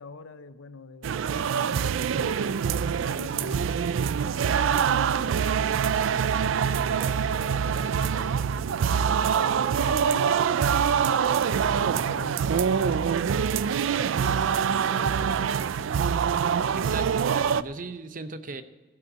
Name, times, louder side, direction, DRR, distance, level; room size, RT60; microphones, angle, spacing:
voice 1, 0.0-4.0 4.3-6.1 6.4-9.6 9.9-16.1, left 3 dB, 90° left, 12 dB, 0.7 m, -45 dB
sound 1, 1.0-17.6, right 7 dB, 80° right, 0.3 m, -25 dB
voice 2, 16.7-18.6, right 3 dB, 40° right, 11 dB, 0.6 m, -38 dB
14.5 x 6.3 x 7.9 m, 1.3 s
head